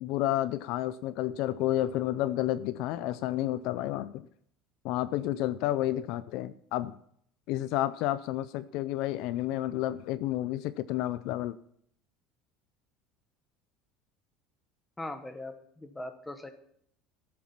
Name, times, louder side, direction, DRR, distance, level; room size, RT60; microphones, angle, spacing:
voice 1, 0.0-4.3 4.8-7.0 7.5-11.6, left 14 dB, 55° left, 16 dB, 0.4 m, -30 dB
voice 2, 15.0-16.5, left 2 dB, 10° left, 8 dB, 1.1 m, -40 dB
14.5 x 7.4 x 5.9 m, 0.67 s
cardioid pair, 165°, 0 cm